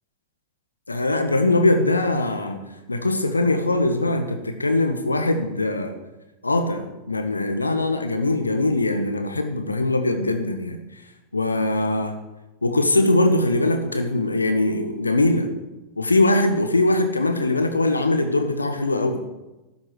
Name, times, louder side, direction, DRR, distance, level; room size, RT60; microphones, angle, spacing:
voice 1, 0.9-5.9 6.4-10.8 11.3-12.2 12.6-15.5 16.0-19.2, left 2 dB, 80° left, 6 dB, 1.5 m, -21 dB
13.0 x 7.2 x 9.8 m, 1.0 s
figure-of-eight pair, 90°, 0 cm